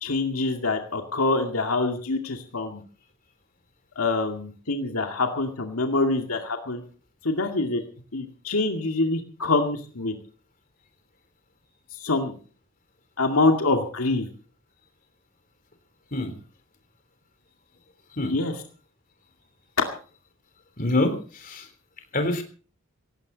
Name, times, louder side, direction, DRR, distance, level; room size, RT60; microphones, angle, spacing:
voice 1, 0.0-2.8 4.0-6.8 7.2-7.8 8.1-10.2 12.0-12.3 13.2-14.3 18.3-18.5, left 3 dB, 80° left, 3 dB, 2.2 m, -25 dB
voice 2, 20.8-21.7 22.1-22.4, left 2 dB, 40° left, 7 dB, 3.6 m, -25 dB
18.0 x 16.5 x 4.0 m, 0.40 s
head